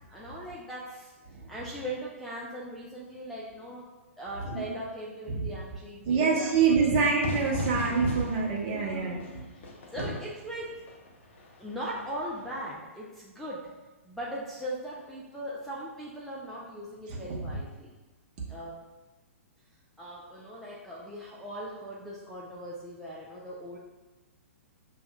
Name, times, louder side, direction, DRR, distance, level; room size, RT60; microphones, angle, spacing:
voice 1, 0.1-1.1 1.5-3.9 4.2-7.1 8.7-9.2 9.9-10.8 11.6-13.7 14.0-17.9 18.5-18.8 20.0-23.8, equal, 5° left, -6 dB, 0.5 m, -39 dB
voice 2, 6.0-9.4 10.0-10.1 17.1-17.6, right 5 dB, 35° right, -2 dB, 0.9 m, -26 dB
Fire / Fireworks, 7.2-12.7, left 2 dB, 55° left, 0.7 m, -39 dB
6.7 x 2.6 x 2.3 m, 1.2 s
figure-of-eight pair, 115°, 8 cm